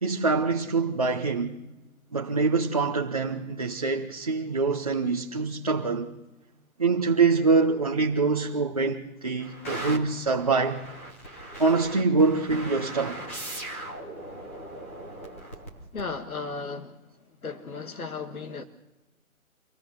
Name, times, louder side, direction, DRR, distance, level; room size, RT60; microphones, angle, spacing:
voice 1, 0.0-1.6 2.1-6.1 6.8-10.8 11.6-13.2, right 4 dB, 25° right, 0.8 m, -25 dB
sound 1, 9.4-16.3, right 1 dB, 10° left, 1.1 m, -39 dB
voice 2, 15.9-17.1 17.4-18.6, left 4 dB, 85° left, 1.9 m, -35 dB
25.0 x 18.5 x 6.5 m
hypercardioid pair, 175°, 42 cm